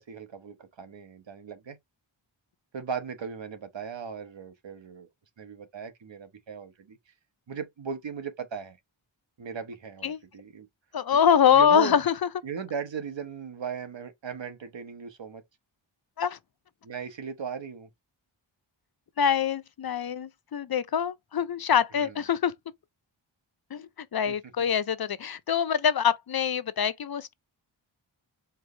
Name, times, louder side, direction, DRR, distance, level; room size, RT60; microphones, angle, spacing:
voice 1, 0.0-1.8 2.7-5.1 5.4-7.0 7.5-8.8 9.4-10.7 11.1-11.2 11.5-12.1 12.4-15.4 16.8-17.9 21.9-22.2 24.3-24.4, right 6 dB, 65° right, 1.1 m, -37 dB
voice 2, 10.9-12.1 16.2-16.4 19.2-22.5 23.7-27.3, left 8 dB, 50° left, 0.5 m, -24 dB
4.6 x 2.6 x 3.2 m
wide cardioid pair, 75°, 48 cm